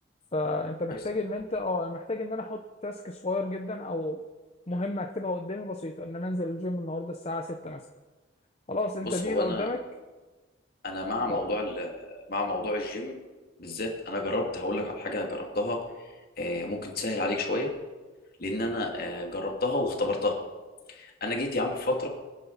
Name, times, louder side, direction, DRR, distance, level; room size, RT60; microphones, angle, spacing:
voice 1, 0.3-4.2 4.7-7.9 8.7-9.8 11.3-11.5, left 2 dB, 30° left, 5 dB, 0.7 m, -32 dB
voice 2, 9.0-9.7 10.8-13.1 13.6-17.7 18.4-20.4 20.9-22.1, left 2 dB, 50° left, 0 dB, 2.6 m, -30 dB
25.5 x 10.0 x 4.1 m, 1.3 s
head